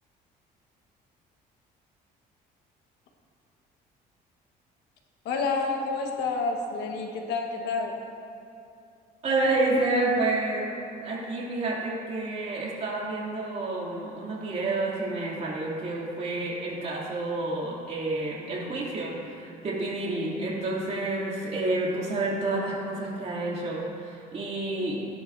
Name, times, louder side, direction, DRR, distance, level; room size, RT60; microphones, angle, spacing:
voice 1, 5.2-8.0, left 4 dB, 85° left, 2 dB, 1.4 m, -29 dB
voice 2, 9.2-10.7 11.0-25.0, right 2 dB, 40° right, -4 dB, 2.8 m, -29 dB
16.5 x 10.5 x 2.7 m, 2.5 s
cardioid pair, 110°, 17 cm